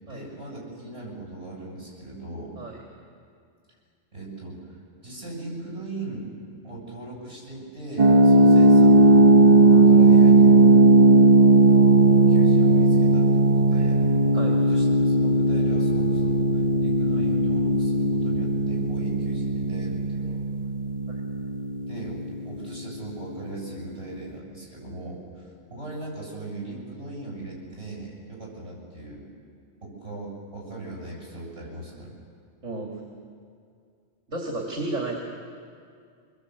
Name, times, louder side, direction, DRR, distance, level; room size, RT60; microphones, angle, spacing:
voice 1, 0.0-2.6 4.1-4.7 5.0-6.3 6.6-9.1 9.7-10.5 12.1-14.0 14.7-20.5 21.9-29.3 29.8-32.2, right 2 dB, 55° right, -3 dB, 8.4 m, -39 dB
sound 1, 8.0-22.7, right 2 dB, 35° right, 1.0 m, -17 dB
voice 2, 34.3-35.2, right 2 dB, 75° right, -1 dB, 2.9 m, -32 dB
26.0 x 21.5 x 8.2 m, 2.3 s
omnidirectional pair, 1.3 m